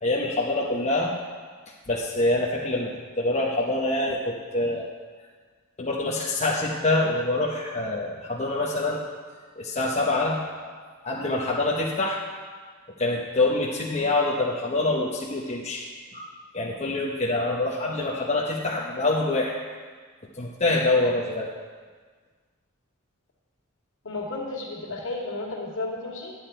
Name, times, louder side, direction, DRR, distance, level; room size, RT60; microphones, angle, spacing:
voice 1, 0.0-1.1 1.9-2.9 3.2-4.9 5.8-9.0 9.6-10.7 11.0-12.2 13.0-15.8 16.1-16.3 16.5-19.6 20.4-21.5, left 2 dB, 30° left, -4 dB, 1.0 m, -25 dB
voice 2, 24.0-26.3, left 2 dB, 60° left, -2 dB, 2.3 m, -33 dB
10.0 x 9.7 x 4.5 m, 1.5 s
head